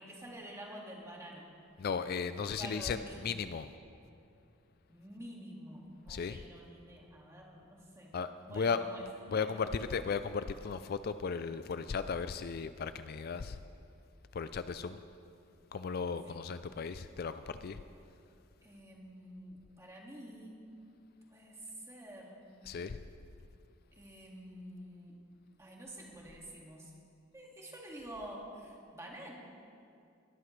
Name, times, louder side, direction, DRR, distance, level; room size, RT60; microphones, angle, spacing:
voice 1, 0.0-1.5 2.6-3.2 4.9-8.2 8.5-9.7 16.2-16.4 18.6-20.7 21.3-22.4 24.0-25.2 25.6-26.9 27.3-29.3, equal, 15° right, -2 dB, 2.1 m, -48 dB
voice 2, 1.8-3.7 6.1-6.4 8.1-8.8 9.3-13.6 14.3-15.0 15.7-17.8 22.7-23.0, left 5 dB, 50° left, 11 dB, 0.4 m, -36 dB
21.0 x 13.5 x 3.3 m, 2.5 s
head